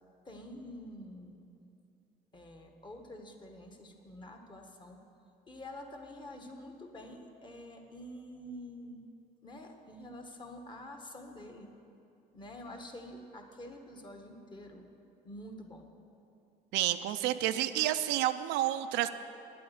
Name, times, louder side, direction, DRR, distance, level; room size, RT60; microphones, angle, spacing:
voice 1, 0.2-1.4 2.3-5.0 5.5-9.0 9.4-11.7 12.3-14.9 15.2-15.9, left 1 dB, 25° left, 3 dB, 1.3 m, -47 dB
voice 2, 16.7-19.1, right 13 dB, 90° right, 10 dB, 0.5 m, -30 dB
9.1 x 8.5 x 7.9 m, 2.6 s
cardioid pair, 110°, 17 cm